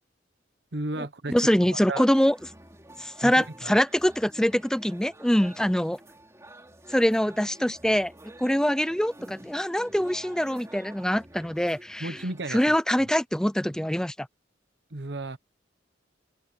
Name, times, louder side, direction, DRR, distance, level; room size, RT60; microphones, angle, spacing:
voice 1, 0.7-1.5 1.9-2.1 3.2-3.8 12.0-12.8 14.9-15.4, right 2 dB, 65° right, 1.2 m, -33 dB
voice 2, 1.3-2.4 3.0-6.0 6.9-8.1 8.4-12.2 12.5-14.3, equal, 5° left, 0.6 m, -24 dB
sound 1, 2.1-12.4, right 1 dB, 15° right, 3.3 m, -49 dB
open air
head